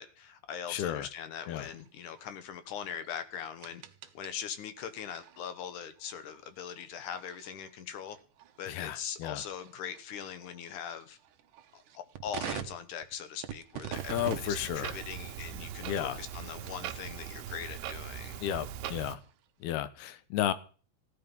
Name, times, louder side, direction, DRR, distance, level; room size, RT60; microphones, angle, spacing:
voice 1, 0.0-3.8 4.1-8.2 8.6-11.2 11.7-18.4, left 8 dB, 65° left, 2.2 m, -41 dB
voice 2, 0.7-1.1 1.5-1.7 8.7-9.4 14.1-14.9 15.9-16.2 18.4-19.2 19.6-20.5, left 11 dB, 85° left, 3.0 m, -33 dB
sound 1, 1.3-17.1 17.5-19.6, right 10 dB, 65° right, 2.2 m, -47 dB
Clock, 13.9-19.1, right 10 dB, 85° right, 3.0 m, -41 dB
16.0 x 12.5 x 5.4 m
omnidirectional pair, 4.5 m